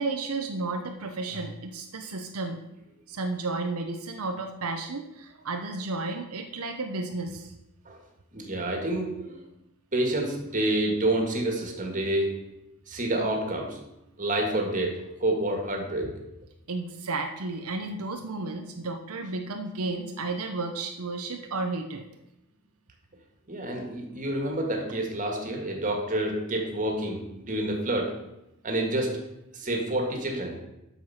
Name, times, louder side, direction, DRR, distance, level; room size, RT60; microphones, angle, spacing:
voice 1, 0.0-2.6 3.1-7.6 16.7-22.0, right 3 dB, 85° right, 4 dB, 0.8 m, -32 dB
voice 2, 8.3-9.4 9.9-12.5 12.9-13.8 14.2-16.2 23.5-28.2 28.6-29.2 29.5-30.6, right 1 dB, 35° right, 2 dB, 1.8 m, -28 dB
7.9 x 6.6 x 5.6 m, 0.89 s
head